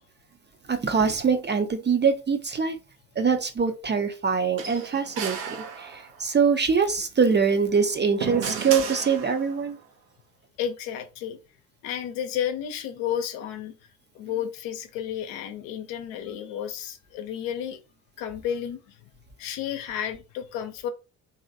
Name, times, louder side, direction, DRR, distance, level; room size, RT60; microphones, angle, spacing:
voice 1, 0.7-2.8 3.2-9.8, right 6 dB, 25° right, 0.5 m, -23 dB
sound 1, 4.6-6.3 7.7-9.7, right 7 dB, 80° right, 0.7 m, -34 dB
voice 2, 10.6-11.4 11.8-13.8 14.1-17.8 18.2-19.0 19.4-20.9, left 9 dB, 70° left, 0.7 m, -32 dB
3.0 x 2.7 x 2.6 m
hypercardioid pair, 50°, 48 cm